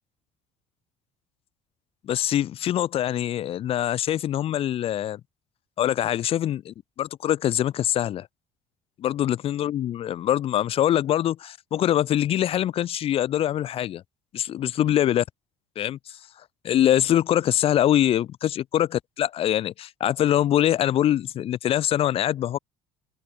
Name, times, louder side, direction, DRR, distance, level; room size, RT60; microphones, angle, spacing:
voice 1, 2.0-5.2 5.8-8.3 9.0-14.0 14.3-15.2 15.8-16.0 16.6-22.6, left 11 dB, 45° left, 0.8 m, -24 dB
open air
cardioid pair, 115°, 13 cm